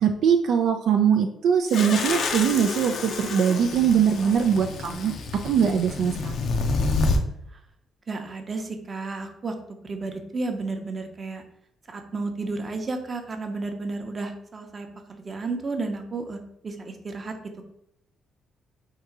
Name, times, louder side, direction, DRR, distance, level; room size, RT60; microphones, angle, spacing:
voice 1, 0.0-5.1 5.4-6.4, right 7 dB, 75° right, 5 dB, 0.3 m, -22 dB
sound 1, 1.7-7.2, left 3 dB, 65° left, 0.6 m, -28 dB
voice 2, 8.1-9.5 9.8-11.4 11.9-17.3, right 3 dB, 35° right, 5 dB, 0.7 m, -32 dB
3.7 x 2.7 x 4.6 m, 0.76 s
cardioid pair, 90°, 0 cm